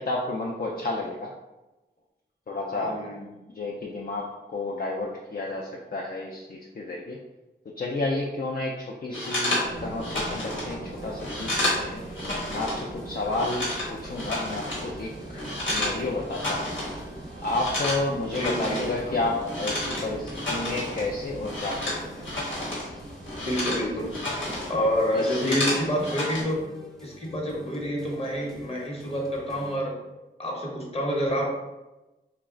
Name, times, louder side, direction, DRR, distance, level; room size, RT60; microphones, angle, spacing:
voice 1, 0.0-1.3 2.5-3.0 3.5-7.2 7.8-12.0 12.5-16.7 17.4-22.1 25.1-25.7, left 2 dB, 50° left, -1 dB, 0.5 m, -31 dB
voice 2, 2.8-3.2 9.1-9.2 18.3-18.8 23.4-24.1 24.7-26.6 27.0-30.0 30.4-31.5, equal, 30° left, -2 dB, 1.0 m, -28 dB
sound 1, 9.1-12.9 13.1-16.0 16.3-17.0 17.3-22.9 23.2-24.7 25.0-26.4, left 1 dB, 85° left, 1.3 m, -31 dB
sound 2, 9.6-25.0, right 2 dB, 50° right, 0.6 m, -41 dB
sound 3, 10.8-29.8, left 1 dB, 5° left, 0.6 m, -48 dB
3.1 x 2.2 x 3.7 m, 1.1 s
wide cardioid pair, 55°, 19 cm